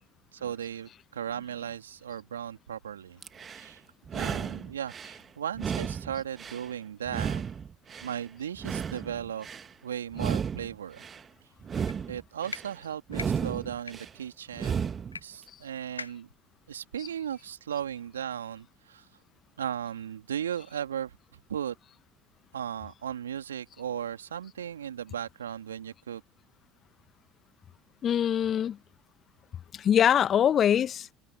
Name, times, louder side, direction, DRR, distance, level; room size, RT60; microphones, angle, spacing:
voice 1, 0.3-3.2 3.5-3.8 4.1-7.4 8.0-9.5 9.8-11.1 12.1-16.3 16.7-19.1 19.6-21.7 22.5-26.2, right 9 dB, 80° right, 2.8 m, -36 dB
sound 1, 3.2-3.7 4.0-5.2 5.5-6.7 7.1-8.2 8.5-9.7 10.1-11.2 11.6-12.7 13.1-14.1 14.5-15.2, right 7 dB, 35° right, 1.8 m, -33 dB
sound 2, 11.8-12.0 12.4-12.6 13.1-13.3 13.8-13.9 15.1-15.2 15.5-15.6 16.0-16.3, left 4 dB, 90° left, 0.8 m, -39 dB
voice 2, 28.0-28.8 29.7-31.1, left 9 dB, 40° left, 1.1 m, -23 dB
figure-of-eight pair, 65°, 0 cm